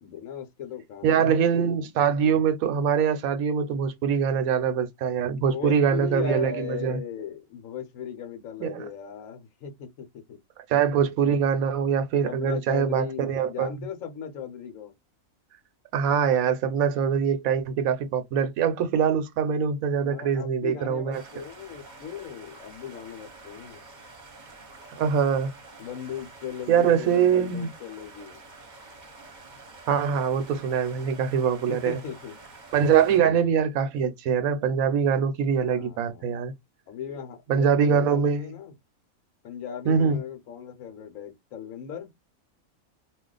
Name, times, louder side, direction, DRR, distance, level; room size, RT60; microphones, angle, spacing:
voice 1, 0.0-1.5 5.3-10.4 12.2-14.9 20.0-23.8 25.8-28.4 31.7-32.3 33.0-33.4 35.6-36.5 36.9-38.7 39.4-42.1, left 8 dB, 70° left, 1.1 m, -38 dB
voice 2, 1.0-7.0 8.6-8.9 10.7-13.7 15.9-21.2 25.0-25.5 26.7-27.7 29.9-32.0 32.7-36.5 37.5-38.4 39.9-40.2, right 7 dB, 80° right, 1.1 m, -23 dB
sound 1, 21.1-33.2, right 3 dB, 40° right, 0.9 m, -48 dB
2.5 x 2.3 x 3.7 m
omnidirectional pair, 1.4 m